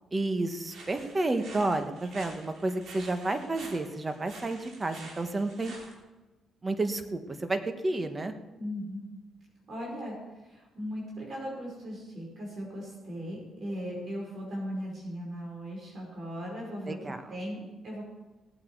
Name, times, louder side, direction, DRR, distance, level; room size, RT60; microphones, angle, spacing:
voice 1, 0.1-5.7 6.6-8.3 16.9-17.2, right 2 dB, 25° right, 7 dB, 1.4 m, -31 dB
sound 1, 0.7-5.9, right 3 dB, 70° right, 3.6 m, -48 dB
voice 2, 8.6-9.1 9.7-18.0, equal, 50° right, -2 dB, 4.8 m, -38 dB
18.5 x 8.6 x 4.7 m, 1.2 s
cardioid pair, 90°, 0 cm